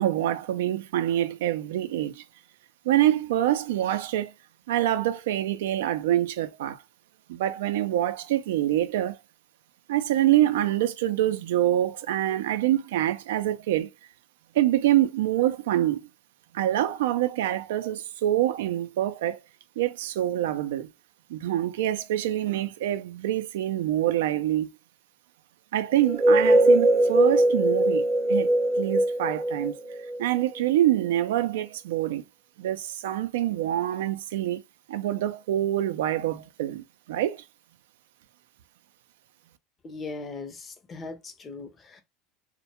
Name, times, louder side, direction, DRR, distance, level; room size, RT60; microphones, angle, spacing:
voice 1, 0.0-2.2 2.9-4.3 4.7-6.8 7.3-9.2 9.9-13.9 14.5-16.1 16.5-19.4 19.8-20.9 21.3-24.7 25.7-28.0 28.3-28.5 28.8-29.7 30.2-32.2 32.6-34.6 34.9-37.4, right 13 dB, 85° right, 0.3 m, -25 dB
sound 1, 26.0-30.6, right 1 dB, 35° right, 0.6 m, -21 dB
voice 2, 39.8-42.0, left 3 dB, 30° left, 0.6 m, -39 dB
2.1 x 2.1 x 2.8 m
supercardioid pair, 105°, 0 cm